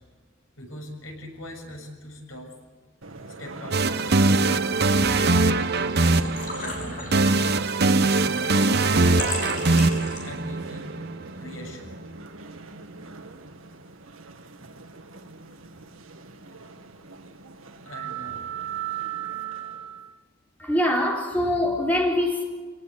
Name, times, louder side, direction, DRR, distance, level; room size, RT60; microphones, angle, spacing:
voice 1, 0.6-2.6 3.3-7.1 7.9-10.9 11.4-12.1 17.9-18.5, equal, 80° left, 2 dB, 6.9 m, -40 dB
sound 1, 3.0-20.2, right 6 dB, 85° right, 1.8 m, -40 dB
sound 2, 3.7-11.6, right 3 dB, 50° right, 1.0 m, -22 dB
Engine / Trickle dribble / Fill (with liquid), 5.7-10.5, left 2 dB, 40° left, 6.6 m, -37 dB
voice 2, 20.6-22.4, left 1 dB, 10° left, -1 dB, 3.9 m, -23 dB
28.5 x 18.5 x 8.4 m, 1.4 s
head